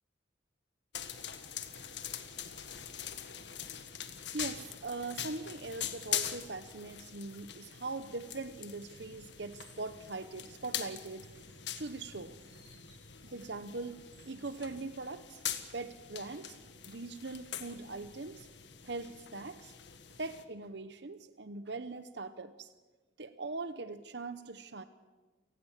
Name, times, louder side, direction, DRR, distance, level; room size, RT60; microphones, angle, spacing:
sound 1, 0.9-20.4, left 9 dB, 65° left, 1.7 m, -43 dB
voice 1, 4.3-11.5 11.8-12.4 13.2-15.4 15.7-16.6 16.9-18.5 18.8-19.7 20.2-22.7 23.2-24.8, right 3 dB, 65° right, 12 dB, 0.9 m, -41 dB
sound 2, 9.3-15.7 16.8-18.2, right 2 dB, 25° right, 6.7 m, -66 dB
29.0 x 19.0 x 7.3 m, 1.3 s
head